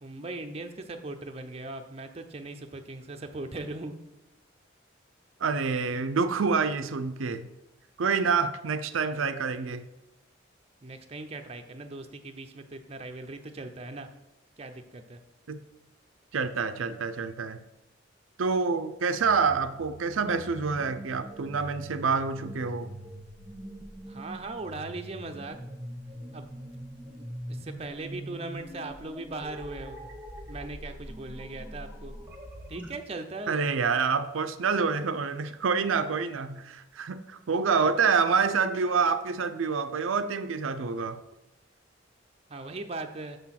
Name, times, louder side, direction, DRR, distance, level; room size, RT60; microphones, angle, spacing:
voice 1, 0.0-4.0 10.8-14.1 14.6-15.2 24.1-25.6 26.3-26.5 27.2-30.0 30.5-32.1 32.7-33.6 33.9-34.0 42.5-43.4, right 2 dB, 30° right, 6 dB, 0.6 m, -39 dB
voice 2, 5.4-7.5 8.0-9.8 15.5-15.6 16.3-17.6 18.4-23.0 33.5-41.2, right 5 dB, 85° right, 10 dB, 0.5 m, -27 dB
sound 1, 19.2-32.9, right 1 dB, 10° right, 1.2 m, -43 dB
7.0 x 6.0 x 5.8 m, 0.95 s
head